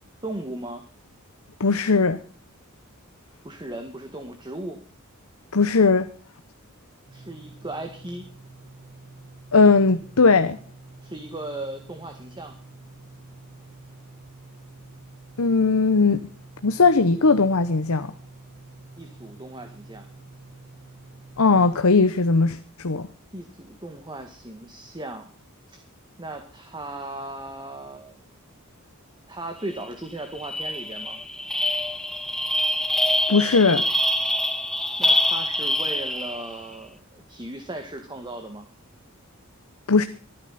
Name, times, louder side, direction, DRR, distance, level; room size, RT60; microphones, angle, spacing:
voice 1, 0.2-0.8 3.4-4.8 7.1-8.2 11.0-12.5 19.0-20.0 23.3-25.3 25.7-25.8 26.2-28.2 29.3-31.2 35.0-38.7, right 2 dB, 20° right, 1.8 m, -37 dB
voice 2, 1.6-2.2 5.5-6.1 9.5-10.6 15.4-16.2 16.6-18.1 21.4-23.1 33.3-33.9 39.9-40.0, left 4 dB, 70° left, 0.9 m, -18 dB
sound 1, 7.1-21.8, right 3 dB, 85° right, 5.5 m, -47 dB
sound 2, 29.7-29.9 30.2-36.6, left 1 dB, 5° left, 1.3 m, -25 dB
24.5 x 9.8 x 4.2 m
head